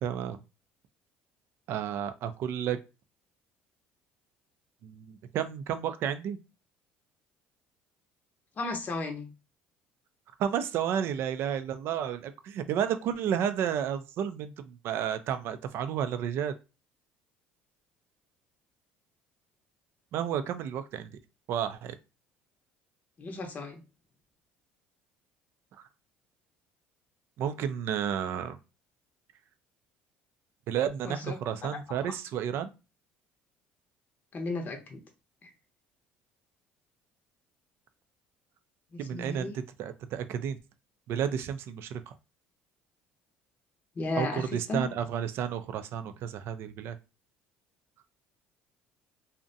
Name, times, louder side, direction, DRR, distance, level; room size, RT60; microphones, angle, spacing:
voice 1, 0.0-0.4 1.7-2.8 4.8-6.4 10.4-16.5 20.1-21.1 21.5-21.9 27.4-28.6 30.7-32.7 39.0-40.6 41.1-42.1 44.2-47.0, right 9 dB, 65° right, 10 dB, 0.4 m, -31 dB
voice 2, 8.6-9.3 23.2-23.8 31.0-31.4 34.3-35.0 35.4-35.5 38.9-39.5 44.0-44.8, left 2 dB, 40° left, 3 dB, 0.6 m, -34 dB
2.5 x 2.1 x 2.6 m, 0.28 s
supercardioid pair, 85°, 4 cm